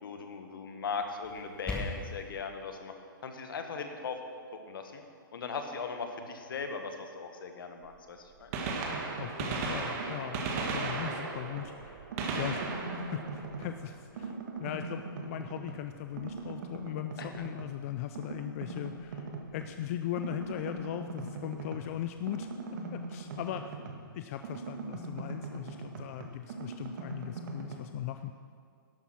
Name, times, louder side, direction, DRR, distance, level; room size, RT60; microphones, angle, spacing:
voice 1, 0.0-2.9 3.2-4.2 4.5-5.0 5.3-8.5 17.2-17.4, left 5 dB, 70° left, 5 dB, 1.5 m, -39 dB
sound 1, 1.2-2.2, left 2 dB, 10° left, 1.4 m, -38 dB
Gunshot gunfire, 7.8-7.9 8.4-14.2 16.2-16.3 17.3-17.4 19.0-19.1 20.5-20.6 20.8-20.9, right 4 dB, 40° right, 1.6 m, -36 dB
sound 2, 8.7-9.7 10.0-11.7 12.1-13.9 14.2-15.9 16.2-17.8 18.1-19.8 20.2-24.1 24.4-27.8, right 3 dB, 55° right, 1.5 m, -41 dB
voice 2, 9.2-12.6 12.9-22.5 22.9-23.8 24.1-28.3, left 12 dB, 40° left, 8 dB, 0.4 m, -39 dB
12.0 x 8.1 x 6.1 m, 2.2 s
hypercardioid pair, 145°, 12 cm